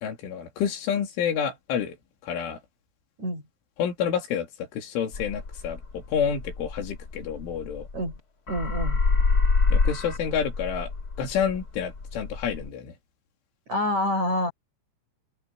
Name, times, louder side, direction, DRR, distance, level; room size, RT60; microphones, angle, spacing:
voice 1, 0.0-2.0 2.2-2.6 3.8-7.9 9.7-10.9 11.2-12.9, left 7 dB, 90° left, 5.6 m, -29 dB
sound 1, 5.1-8.2 8.5-12.7, left 4 dB, 40° left, 1.2 m, -26 dB
voice 2, 8.5-9.0 13.7-14.5, left 1 dB, 35° right, 7.8 m, -27 dB
open air
omnidirectional pair, 5.4 m